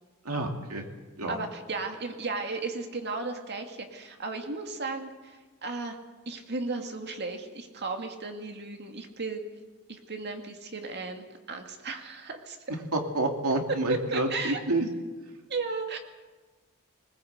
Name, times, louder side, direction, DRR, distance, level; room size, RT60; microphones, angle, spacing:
voice 1, 0.2-0.9 1.2-1.4 12.9-14.9, right 2 dB, 75° right, 3 dB, 2.7 m, -28 dB
voice 2, 1.3-6.0 6.3-9.4 9.9-12.6 13.9-14.6 15.5-16.0, right 3 dB, 50° right, 4 dB, 2.4 m, -35 dB
20.5 x 20.0 x 8.2 m, 1.3 s
head